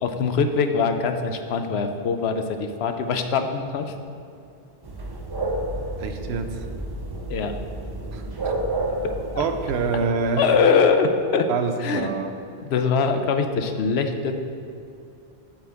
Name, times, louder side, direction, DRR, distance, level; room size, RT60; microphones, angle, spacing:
voice 1, 0.0-3.9 7.3-7.6 9.3-9.4 10.4-11.5 11.8-12.1 12.6-14.3, left 5 dB, 75° left, 7 dB, 0.9 m, -22 dB
sound 1, 4.8-10.0, right 2 dB, 30° right, 0.5 m, -30 dB
voice 2, 6.0-6.7 8.1-8.6 9.4-10.5 11.5-12.4, right 5 dB, 80° right, 7 dB, 0.9 m, -26 dB
7.9 x 7.4 x 3.5 m, 2.5 s
omnidirectional pair, 1.1 m